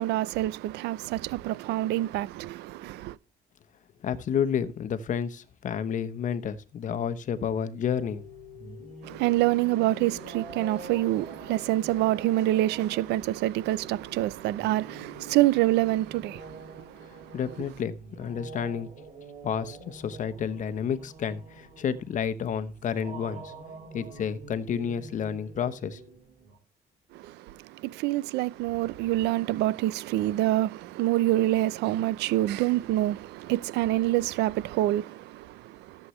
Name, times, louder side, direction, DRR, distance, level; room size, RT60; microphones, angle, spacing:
voice 1, 0.0-3.2 9.0-17.4 27.1-36.1, right 15 dB, 85° right, 0.6 m, -27 dB
voice 2, 4.0-8.2 17.3-18.9 19.4-23.5 23.9-26.0, left 8 dB, 50° left, 1.0 m, -30 dB
sound 1, 8.0-26.6, right 2 dB, 50° right, 7.3 m, -46 dB
14.5 x 7.7 x 3.2 m
cardioid pair, 110°, 17 cm